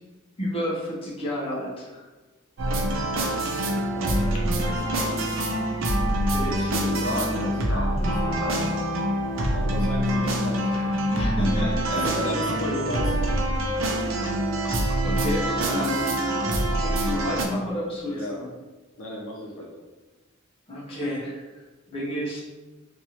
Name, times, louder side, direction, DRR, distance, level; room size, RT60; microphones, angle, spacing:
voice 1, 0.4-2.0 6.3-6.8 11.1-12.2 15.0-16.2 16.8-18.5 20.7-22.4, equal, 25° left, -5 dB, 0.7 m, -31 dB
sound 1, 2.6-17.4, right 1 dB, 70° right, 0.5 m, -25 dB
voice 2, 3.9-5.3 6.5-8.7 9.5-10.8 11.9-13.3 18.1-18.4 19.0-19.8, left 1 dB, 85° left, -2 dB, 0.7 m, -34 dB
2.9 x 2.5 x 2.8 m, 1.2 s
head